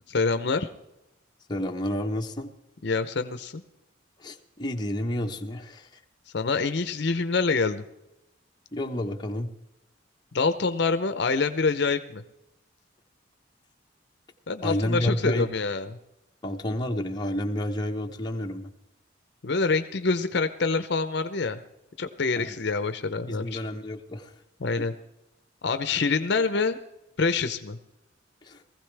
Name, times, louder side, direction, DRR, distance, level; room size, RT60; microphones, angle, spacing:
voice 1, 0.1-0.7 2.8-3.6 6.3-7.8 10.3-12.2 14.5-16.0 19.4-21.6 22.0-23.6 24.6-24.9 25.6-26.8 27.2-27.8, left 4 dB, 60° left, 10 dB, 0.7 m, -26 dB
voice 2, 1.5-2.5 4.2-5.9 8.7-9.5 14.6-15.5 16.4-18.7 22.4-22.6 23.3-24.3 24.8-24.9 28.4-28.6, left 1 dB, 20° left, 2 dB, 1.0 m, -30 dB
20.0 x 15.0 x 3.4 m, 0.92 s
head